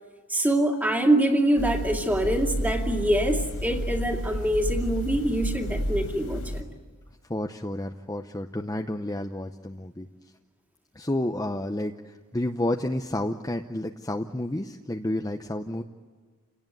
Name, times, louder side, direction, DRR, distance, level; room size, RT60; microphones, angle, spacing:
voice 1, 0.3-6.6, right 1 dB, 10° right, 2 dB, 2.5 m, -24 dB
sound 1, 1.6-6.6, equal, 90° left, 4.1 m, -31 dB
voice 2, 7.3-10.1 10.9-15.8, left 1 dB, 15° left, 4 dB, 0.8 m, -30 dB
29.0 x 18.0 x 9.2 m, 1.5 s
head